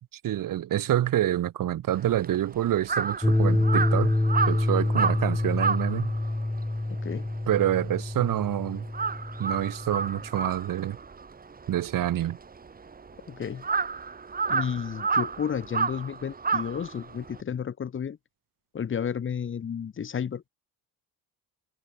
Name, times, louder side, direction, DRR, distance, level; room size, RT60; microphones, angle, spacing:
voice 1, 0.2-4.1 4.5-6.1 7.5-8.9 9.4-11.0 11.7-12.4, right 12 dB, 60° right, 2.2 m, -27 dB
Crow, 1.9-8.5 8.8-17.4, right 5 dB, 25° right, 2.4 m, -31 dB
sound 1, 3.2-10.3, left 2 dB, 5° left, 0.3 m, -27 dB
voice 2, 6.9-7.3 13.3-13.6 14.5-18.2 18.7-20.5, left 7 dB, 30° left, 1.3 m, -32 dB
cardioid pair, 135°, 38 cm